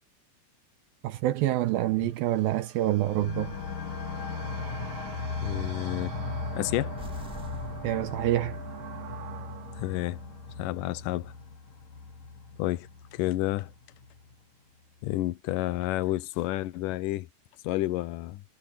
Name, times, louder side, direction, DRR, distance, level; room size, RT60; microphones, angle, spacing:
voice 1, 1.0-3.6 7.8-8.6, right 14 dB, 80° right, 2.3 m, -27 dB
sound 1, 1.3-11.6, right 9 dB, 60° right, 3.1 m, -45 dB
sound 2, 3.0-14.4, left 4 dB, 55° left, 2.6 m, -38 dB
voice 2, 5.4-6.1 6.5-6.9 9.8-10.2 10.6-11.3 12.6-13.7 15.0-17.3 17.6-18.4, left 16 dB, 80° left, 2.0 m, -30 dB
sound 3, 7.0-8.8, equal, 5° right, 1.0 m, -47 dB
omnidirectional pair, 4.8 m